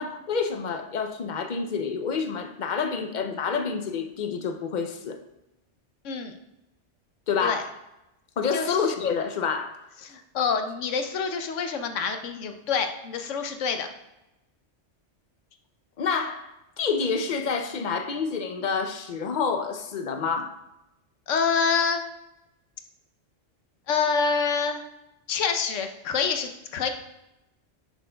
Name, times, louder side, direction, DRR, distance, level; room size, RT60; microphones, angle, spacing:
voice 1, 0.0-5.2 7.3-7.7 8.4-9.9 16.0-20.5, left 5 dB, 50° left, 0.6 m, -28 dB
voice 2, 10.0-13.9 21.3-22.0 23.9-24.8 25.3-26.9, left 5 dB, 80° left, 1.1 m, -26 dB
10.0 x 6.1 x 2.3 m
omnidirectional pair, 1.2 m